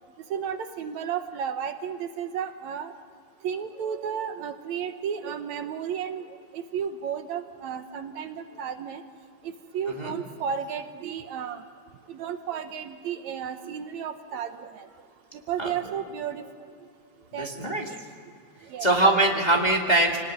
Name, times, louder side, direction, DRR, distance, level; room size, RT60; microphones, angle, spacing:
voice 1, 0.3-2.9 3.4-6.2 6.5-9.0 9.7-11.6 12.1-14.8 15.5-16.4 17.3-17.5 18.7-18.9, right 8 dB, 70° right, 8 dB, 2.2 m, -33 dB
voice 2, 17.4-17.9 18.8-20.2, right 2 dB, 15° left, 0 dB, 1.9 m, -22 dB
27.5 x 19.0 x 9.5 m, 2.4 s
omnidirectional pair, 3.5 m